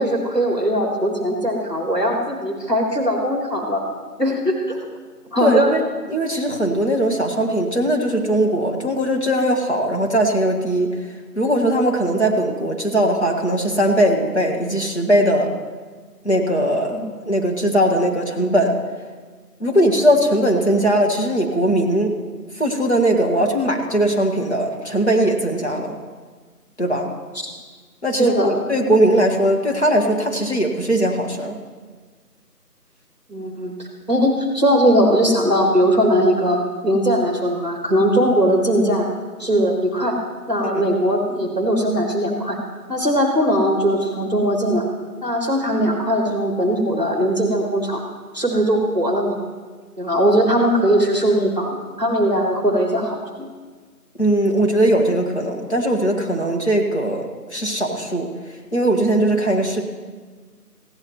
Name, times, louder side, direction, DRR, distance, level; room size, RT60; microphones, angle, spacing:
voice 1, 0.0-3.8 4.2-4.8 5.3-5.7 16.9-17.0 27.4-27.5 28.2-28.5 33.3-33.7 34.1-39.1 39.4-40.2 40.5-42.6 42.9-44.8 45.2-48.0 48.3-49.4 50.0-53.5, equal, 25° right, 1 dB, 1.6 m, -19 dB
voice 2, 5.4-5.8 6.1-10.9 11.4-15.5 16.2-17.0 17.3-18.8 19.6-22.1 22.6-26.0 26.8-27.1 28.0-31.6 40.6-40.8 54.2-58.3 58.7-59.8, right 1 dB, 45° left, 1 dB, 1.7 m, -19 dB
19.5 x 16.0 x 3.1 m, 1.5 s
figure-of-eight pair, 170°, 48 cm